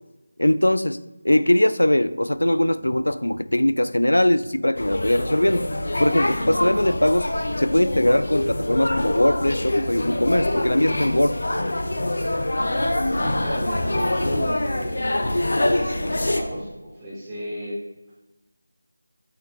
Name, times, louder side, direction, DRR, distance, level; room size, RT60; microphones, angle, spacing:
voice 1, 0.4-5.7 6.0-7.3 7.6-11.4, left 1 dB, 85° left, 0.3 m, -21 dB
sound 1, 4.8-16.4, left 1 dB, 65° left, 0.7 m, -25 dB
voice 2, 13.2-17.7, equal, 10° right, 2.2 m, -33 dB
5.9 x 5.9 x 4.1 m
figure-of-eight pair, 165°, 0 cm